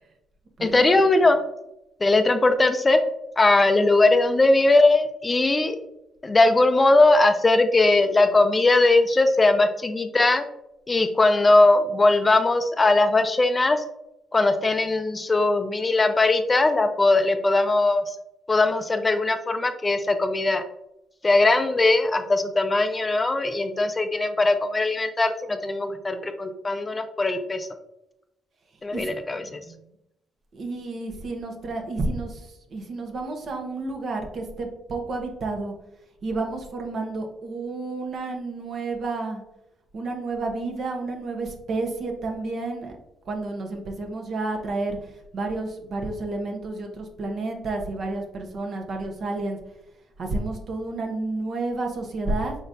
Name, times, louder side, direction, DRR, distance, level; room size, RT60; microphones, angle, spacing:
voice 1, 0.6-1.4 2.0-3.0 3.4-5.8 6.2-10.5 10.9-13.8 14.3-18.2 18.5-20.6 21.2-27.7 28.8-29.6, left 2 dB, 25° left, 8 dB, 0.4 m, -20 dB
voice 2, 28.9-29.9 30.5-35.7 36.2-39.4 39.9-43.0 43.2-49.6 50.2-52.6, right 2 dB, 55° right, 3 dB, 1.0 m, -31 dB
5.0 x 3.9 x 2.7 m, 0.85 s
cardioid pair, 90°, 0 cm